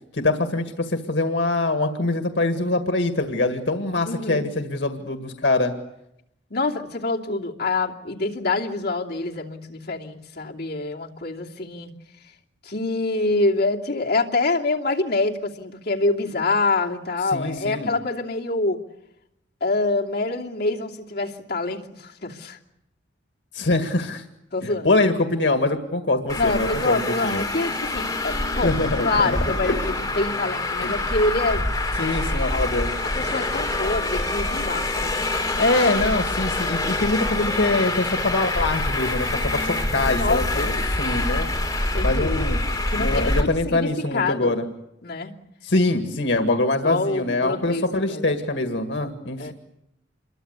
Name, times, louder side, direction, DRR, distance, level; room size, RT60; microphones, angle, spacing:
voice 1, 0.1-5.7 17.3-17.9 23.5-24.2 24.6-27.4 28.6-29.3 30.8-30.9 32.0-32.9 35.6-41.5 42.0-42.6 43.0-44.7 45.6-49.5, left 2 dB, 85° left, 6 dB, 2.0 m, -24 dB
voice 2, 4.0-4.4 6.5-11.9 12.6-18.8 19.6-22.6 24.5-25.2 26.4-28.7 29.0-31.6 33.1-35.2 40.1-40.7 41.9-44.5 45.0-45.3 46.8-48.3 49.4-49.5, left 3 dB, 60° left, -2 dB, 2.8 m, -26 dB
Traffic noise roadway noise, 26.3-43.4, left 2 dB, 20° left, 4.4 m, -25 dB
27.5 x 22.5 x 8.2 m, 0.84 s
head